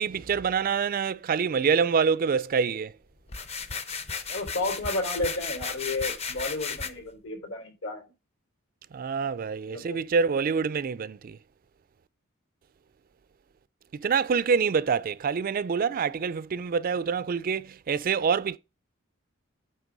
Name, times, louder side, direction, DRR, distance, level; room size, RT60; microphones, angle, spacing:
voice 1, 0.0-2.9 8.9-11.4 14.0-18.6, right 6 dB, 40° right, 0.4 m, -26 dB
sound 1, 3.3-6.9, left 5 dB, 30° left, 0.7 m, -34 dB
voice 2, 4.3-8.1 9.6-10.0, left 2 dB, 70° left, 3.4 m, -32 dB
9.0 x 3.3 x 6.0 m
head